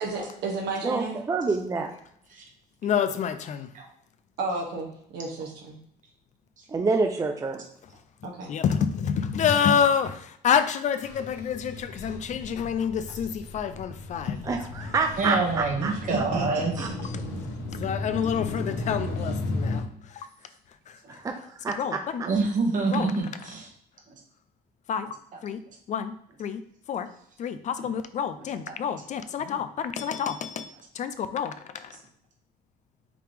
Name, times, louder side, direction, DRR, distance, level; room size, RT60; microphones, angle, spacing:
voice 1, 0.0-1.2 4.4-5.8 8.2-8.5 15.8-16.9 17.3-17.4, right 3 dB, 75° right, 0 dB, 1.4 m, -32 dB
voice 2, 0.8-1.9 6.7-7.6 14.4-15.9 16.8-16.9 21.1-22.3, right 4 dB, 20° right, 5 dB, 0.4 m, -28 dB
voice 3, 2.8-3.7 8.5-14.6 17.8-20.3 20.9-21.2 21.8-22.2 22.9-23.1 24.9-25.1 25.4-25.6 25.9-26.1 26.4-26.6 26.9-27.1 27.4-32.0, left 7 dB, 45° left, 11 dB, 0.4 m, -28 dB
sound 1, 11.0-19.8, left 2 dB, 80° left, 1.1 m, -35 dB
voice 4, 15.2-16.9 19.2-19.3 21.0-21.1 22.3-23.7 25.3-25.4 28.7-29.0, right 3 dB, 50° right, 1 dB, 1.3 m, -27 dB
4.9 x 3.0 x 3.4 m, 0.70 s
cardioid pair, 110°, 17 cm